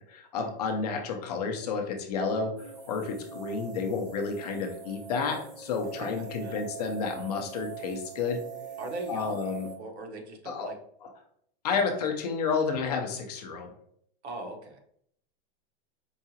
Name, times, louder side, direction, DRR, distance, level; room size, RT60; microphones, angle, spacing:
voice 1, 0.1-8.4 9.1-9.7 10.5-10.7 11.6-13.7, left 5 dB, 40° left, 3 dB, 0.5 m, -31 dB
sound 1, 2.6-9.8, right 7 dB, 50° right, 1.1 m, -43 dB
voice 2, 8.8-9.4 9.8-10.8 11.7-11.8 14.2-14.8, right 2 dB, 80° right, 3 dB, 1.0 m, -39 dB
4.7 x 2.4 x 2.7 m, 0.67 s
supercardioid pair, 180°, 33 cm